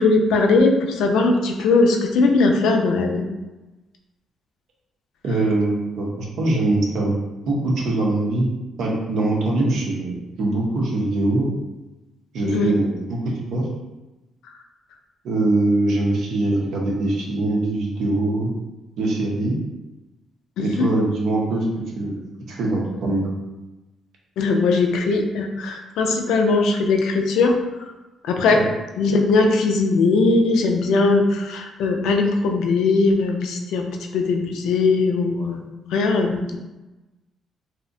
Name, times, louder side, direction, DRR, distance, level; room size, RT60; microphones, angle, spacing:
voice 1, 0.0-3.2 12.4-12.7 20.6-20.9 24.4-27.5 27.8-27.9 28.2-28.6 29.0-33.9 34.1-35.6 35.9-36.6, left 3 dB, 85° left, 3 dB, 0.3 m, -19 dB
voice 2, 5.2-7.2 7.5-8.5 8.8-11.5 12.3-13.7 15.2-18.5 19.0-19.6 20.6-21.7 22.0-23.3 28.5-28.7, right 2 dB, 75° right, -2 dB, 0.6 m, -22 dB
2.7 x 2.1 x 2.5 m, 1.1 s
cardioid pair, 90°, 0 cm